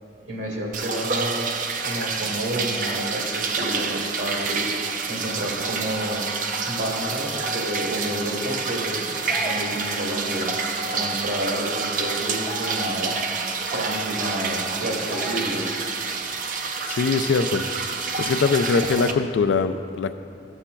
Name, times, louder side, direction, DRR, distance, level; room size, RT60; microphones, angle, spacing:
voice 1, 0.2-1.6 1.8-4.7 5.1-6.3 6.7-10.5 10.9-13.2 13.7-15.7, right 1 dB, 85° right, -2 dB, 1.8 m, -30 dB
sound 1, 0.7-19.1, right 4 dB, 45° right, 0.4 m, -28 dB
sound 2, 9.1-9.9 11.3-11.4 11.7-12.0 12.3-13.2 13.6-13.7 14.4-14.5 15.1-15.7 16.1-16.2, left 1 dB, 20° left, 0.8 m, -36 dB
voice 2, 16.9-17.9 18.2-20.1, left 4 dB, 90° left, 10 dB, 0.4 m, -22 dB
14.0 x 7.1 x 2.2 m, 2.6 s
head